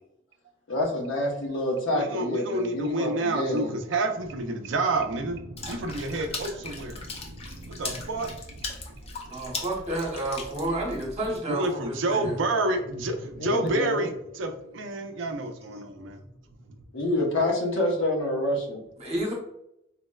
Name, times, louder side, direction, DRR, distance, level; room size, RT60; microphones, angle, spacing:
voice 1, 0.7-3.7 13.4-14.1 16.9-18.8, left 1 dB, 85° left, 0 dB, 0.8 m, -27 dB
voice 2, 1.9-8.4 11.5-16.2, right 2 dB, 75° right, 5 dB, 0.4 m, -29 dB
Water / Splash splatter, 5.6-11.4, left 3 dB, 30° left, 0.5 m, -38 dB
voice 3, 9.3-12.4 19.0-19.3, right 1 dB, 35° right, -2 dB, 0.8 m, -30 dB
4.0 x 2.0 x 2.2 m, 0.80 s
head